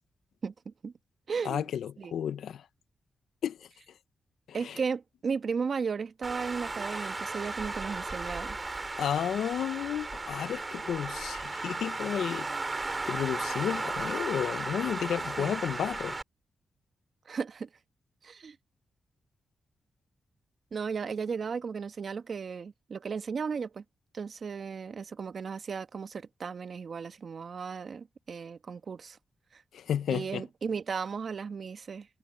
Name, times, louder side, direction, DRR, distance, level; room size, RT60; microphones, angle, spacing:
voice 1, 0.4-0.9 1.3-1.6 2.0-2.1 4.5-8.6 15.4-15.5 17.3-17.7 18.2-18.6 20.7-23.8 24.1-29.2 29.5-29.6 30.1-32.1, right 5 dB, 60° right, 1.3 m, -35 dB
voice 2, 1.4-2.6 3.4-3.7 4.5-4.8 9.0-16.2 29.7-30.4, left 9 dB, 85° left, 0.8 m, -32 dB
Traffic noise roadway noise, 6.2-16.2, right 3 dB, 30° right, 2.8 m, -35 dB
cardioid pair, 65°, 0 cm